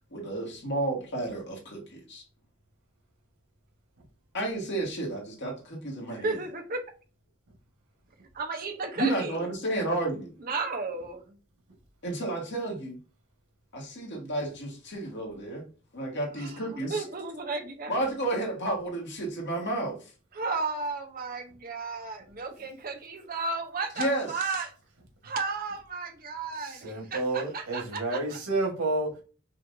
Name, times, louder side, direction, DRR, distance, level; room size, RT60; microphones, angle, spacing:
voice 1, 0.1-2.2 4.3-6.4 9.0-10.3 12.0-13.0 13.7-15.6 15.9-17.1 17.9-20.1 23.9-24.3, right 1 dB, 60° left, 1.6 m, -31 dB
voice 2, 6.1-6.8 8.3-9.4 10.4-11.4 16.4-17.9 20.3-24.7 25.2-28.2, right 4 dB, 45° right, 0.8 m, -34 dB
voice 3, 26.6-29.2, right 2 dB, 90° right, 1.5 m, -30 dB
5.6 x 2.6 x 2.6 m
head